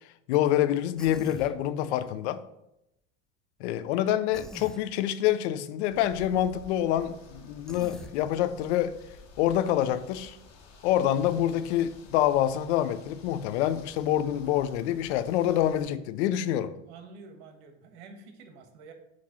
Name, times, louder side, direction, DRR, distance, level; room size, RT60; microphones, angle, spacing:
voice 1, 0.3-2.4 3.6-8.9 9.4-10.4 10.8-16.7, left 11 dB, 80° left, 0.6 m, -26 dB
Human voice, 1.0-1.6 4.3-4.8 7.7-8.1, left 1 dB, ahead, 0.4 m, -43 dB
sound 1, 5.9-15.9, left 4 dB, 55° left, 1.6 m, -52 dB
voice 2, 16.5-18.9, right 4 dB, 75° right, 1.5 m, -49 dB
7.6 x 3.1 x 6.1 m
supercardioid pair, 110°, 33 cm